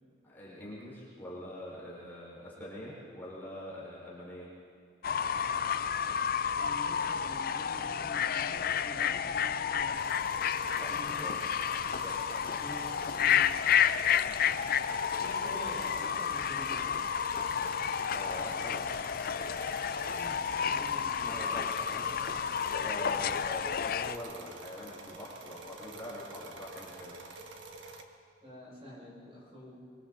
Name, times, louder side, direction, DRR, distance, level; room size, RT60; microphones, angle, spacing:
voice 1, 0.2-4.5 10.7-11.4 12.0-12.6 18.1-18.9 21.2-22.1 22.3-27.2, left 1 dB, 10° left, -8 dB, 5.6 m, -44 dB
Fowl / Bird, 5.0-24.2, left 7 dB, 50° left, 0.5 m, -31 dB
voice 2, 6.6-10.3 10.9-11.3 12.6-13.5 14.2-14.3 15.2-16.8 20.2-21.2 28.4-29.9, equal, 35° right, -6 dB, 6.8 m, -47 dB
sound 1, 9.9-28.0, right 3 dB, 85° right, 1.7 m, -48 dB
25.0 x 25.0 x 4.2 m, 2.2 s
head